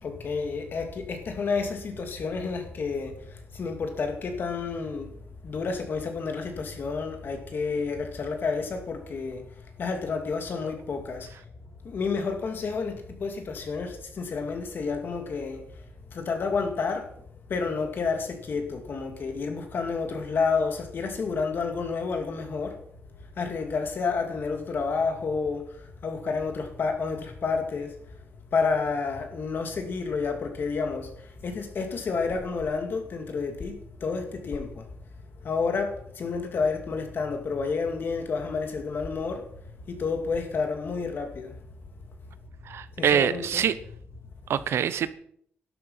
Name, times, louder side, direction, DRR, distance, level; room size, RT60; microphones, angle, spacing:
voice 1, 0.0-5.1 5.4-9.4 9.8-11.3 11.8-15.6 16.1-17.1 17.5-22.8 23.4-27.9 28.5-34.8 35.4-39.5 39.9-41.5 43.0-43.7, left 4 dB, 55° left, 2.4 m, -30 dB
voice 2, 42.6-43.7 44.5-45.1, right 9 dB, 90° right, 0.8 m, -24 dB
12.0 x 11.0 x 5.6 m
wide cardioid pair, 140°, 4 cm